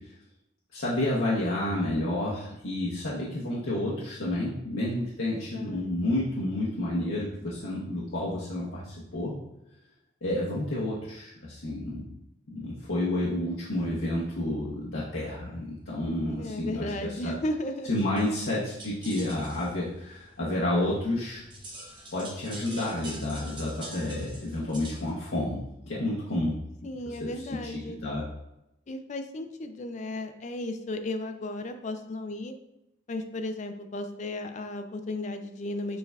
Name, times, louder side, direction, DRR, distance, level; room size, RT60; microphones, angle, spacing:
voice 1, 0.7-9.4 10.2-12.1 12.5-16.9 17.2-17.3 17.9-21.4 22.1-26.5 27.5-28.2, left 1 dB, 75° left, -7 dB, 0.9 m, -30 dB
voice 2, 5.2-6.0 16.3-17.9 26.8-28.0 28.9-32.5 33.1-36.0, left 1 dB, 35° left, 7 dB, 0.4 m, -35 dB
sound 1, 18.0-25.1, right 1 dB, 25° right, 0.9 m, -46 dB
6.7 x 3.3 x 2.3 m, 0.88 s
head